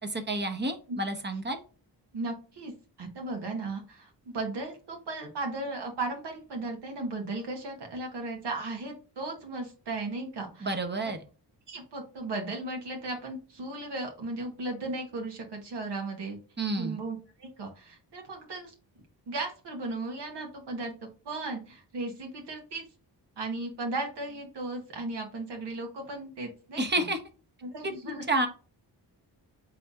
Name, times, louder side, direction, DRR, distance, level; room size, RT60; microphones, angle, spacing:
voice 1, 0.0-1.6 10.6-11.2 16.6-17.0 26.8-27.2 28.3-28.5, right 2 dB, 25° right, 7 dB, 0.9 m, -29 dB
voice 2, 2.1-2.7 3.0-10.7 11.0-11.1 11.7-16.4 16.8-18.7 19.3-20.9 21.2-22.8 23.4-27.1 27.6-28.2, right 2 dB, 85° right, 2 dB, 1.4 m, -36 dB
4.1 x 3.3 x 3.5 m, 0.35 s
wide cardioid pair, 95°, 41 cm